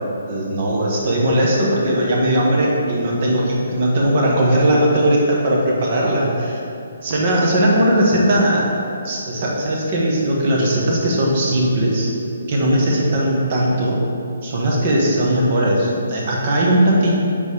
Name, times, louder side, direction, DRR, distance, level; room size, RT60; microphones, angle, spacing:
voice 1, 0.3-6.6 7.0-8.7 9.0-12.1 12.5-14.0 14.4-17.1, right 1 dB, 35° right, -3 dB, 1.3 m, -18 dB
5.5 x 5.2 x 4.9 m, 2.6 s
hypercardioid pair, 165°, 0 cm